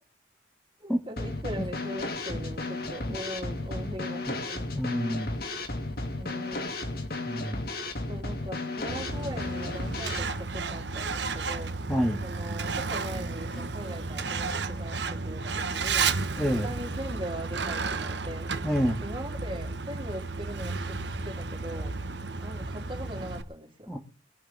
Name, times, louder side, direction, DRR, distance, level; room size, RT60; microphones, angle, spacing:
voice 1, 0.8-4.9 6.2-6.7 8.1-11.7 12.2-16.1 16.6-18.5 18.9-21.9 22.4-23.9, equal, 30° right, 2 dB, 3.4 m, -40 dB
Drum kit / Snare drum, 1.2-10.2, left 2 dB, 55° left, 2.5 m, -34 dB
voice 2, 4.8-5.3 7.2-7.7 11.9-12.2 16.4-16.7 18.6-19.0 23.9-24.0, equal, 5° left, 1 dB, 1.9 m, -27 dB
Truck, 8.9-23.4, right 4 dB, 75° right, 1.4 m, -33 dB
22.5 x 11.0 x 3.6 m, 0.34 s
head